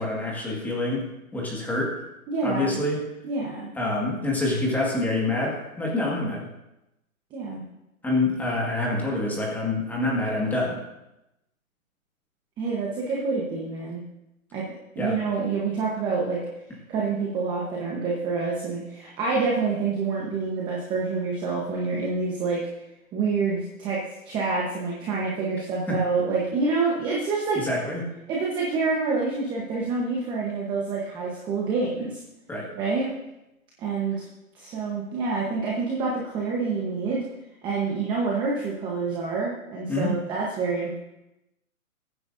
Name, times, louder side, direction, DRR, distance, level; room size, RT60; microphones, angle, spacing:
voice 1, 0.0-1.9 2.4-3.0 3.8-6.4 8.0-10.8 15.0-15.2 25.9-26.0 27.6-28.0 32.5-32.7 39.9-40.2, left 2 dB, 5° left, -3 dB, 1.8 m, -26 dB
voice 2, 2.3-2.8 3.2-3.7 7.3-7.6 12.6-14.0 14.5-14.7 14.9-16.4 16.9-22.6 23.1-27.7 28.3-32.2 32.7-33.1 33.8-34.2 34.5-37.2 37.6-40.9, right 4 dB, 10° right, -3 dB, 1.1 m, -27 dB
22.0 x 9.5 x 2.7 m, 0.92 s
hypercardioid pair, 160°, 42 cm